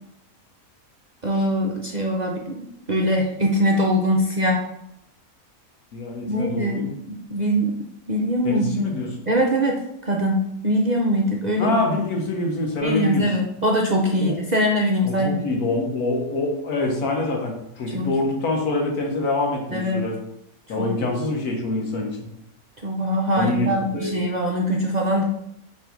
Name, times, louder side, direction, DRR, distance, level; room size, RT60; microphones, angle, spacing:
voice 1, 1.2-2.6 2.9-4.6 6.3-7.7 8.1-8.9 9.3-11.8 12.8-15.5 17.9-18.1 19.7-20.0 20.8-20.9 22.8-25.2, equal, 50° right, -1 dB, 0.5 m, -22 dB
voice 2, 5.9-6.9 8.4-9.1 11.6-13.3 14.2-14.4 15.0-20.2 20.7-22.3 23.4-24.2, left 2 dB, 80° left, 1 dB, 1.7 m, -25 dB
5.4 x 3.3 x 5.2 m, 0.77 s
omnidirectional pair, 1.6 m